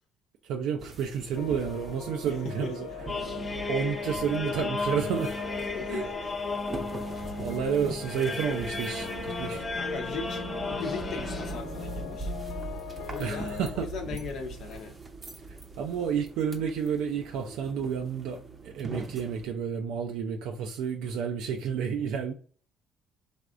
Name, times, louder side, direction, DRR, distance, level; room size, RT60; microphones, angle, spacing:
voice 1, 0.4-2.9 3.7-5.4 5.9-6.0 7.4-9.6 13.2-13.9 15.8-22.3, right 7 dB, 80° right, 0.4 m, -30 dB
sound 1, 0.8-19.5, right 3 dB, 25° right, 0.6 m, -42 dB
sound 2, 1.3-13.7, left 5 dB, 85° left, 1.0 m, -41 dB
voice 2, 2.4-2.9 5.7-6.3 7.1-7.4 9.7-12.3 13.1-15.0, left 4 dB, 65° left, 0.7 m, -38 dB
sound 3, 3.1-11.5, left 3 dB, 20° left, 1.0 m, -34 dB
3.4 x 2.4 x 3.7 m
cardioid pair, 110°, 0 cm